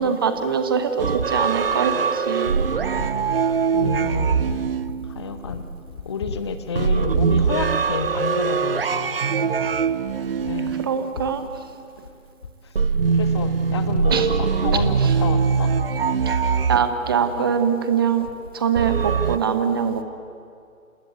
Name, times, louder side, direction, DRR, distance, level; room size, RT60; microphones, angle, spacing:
voice 1, 0.0-2.6 10.8-11.5 14.1-14.3 14.7-14.8 16.3-16.4 16.7-18.3 18.5-20.0, right 7 dB, 15° right, 9 dB, 1.0 m, -23 dB
sound 1, 1.0-5.6 6.7-11.5 12.8-17.4 18.8-19.4, right 5 dB, 45° right, 0.7 m, -22 dB
voice 2, 3.7-4.7 5.1-5.6 6.1-9.2 10.4-10.7 13.1-15.7, left 5 dB, 20° left, 9 dB, 0.8 m, -29 dB
28.0 x 18.5 x 9.5 m, 2.5 s
figure-of-eight pair, 145°, 42 cm